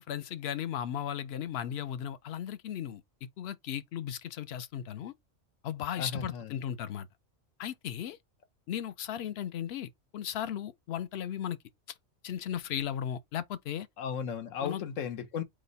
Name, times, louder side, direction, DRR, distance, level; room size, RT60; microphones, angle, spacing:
voice 1, 0.0-3.0 3.4-5.1 5.6-7.1 7.6-8.2 8.7-11.6 12.2-13.9 14.6-14.8, left 10 dB, 65° left, 0.8 m, -36 dB
voice 2, 6.0-6.5 14.0-15.4, left 7 dB, 90° left, 1.2 m, -35 dB
4.8 x 2.2 x 4.0 m
omnidirectional pair, 1.3 m